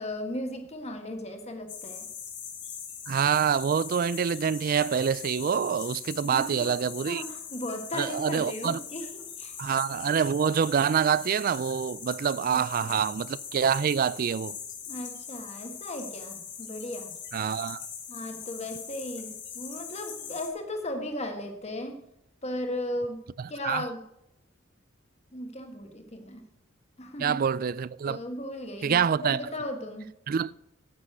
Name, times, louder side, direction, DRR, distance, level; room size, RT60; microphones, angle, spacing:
voice 1, 0.0-2.1 6.2-6.7 7.1-9.1 9.4-9.5 12.5-13.1 14.9-17.1 18.1-22.0 22.4-23.2 23.5-24.0 25.3-26.4 27.0-27.4 28.0-30.1, left 1 dB, 30° left, 1.6 m, -36 dB
sound 1, 1.7-20.5, left 7 dB, 55° left, 2.4 m, -41 dB
voice 2, 3.1-7.2 7.9-8.8 9.6-14.6 17.3-17.8 23.4-23.8 27.2-28.2 28.8-29.4 30.3-30.5, right 7 dB, 45° right, 0.3 m, -26 dB
9.7 x 8.5 x 6.1 m
head